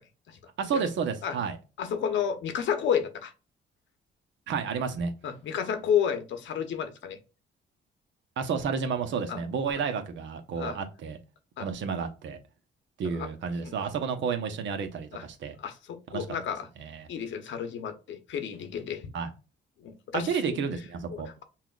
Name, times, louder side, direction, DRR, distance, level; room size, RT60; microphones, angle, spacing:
voice 1, 0.6-1.6 4.5-5.1 8.4-11.2 11.6-12.4 13.0-15.5 16.1-16.3 16.8-17.1 19.1-19.3 20.1-21.3, right 6 dB, 70° right, 0.9 m, -31 dB
voice 2, 1.8-3.3 5.2-7.2 9.3-9.4 10.6-10.8 11.6-11.7 13.2-13.3 13.6-13.7 15.1-15.2 15.6-16.7 17.1-19.1 19.8-20.6 21.1-21.4, left 8 dB, 70° left, 0.8 m, -31 dB
5.6 x 2.4 x 2.4 m
cardioid pair, 90°, 20 cm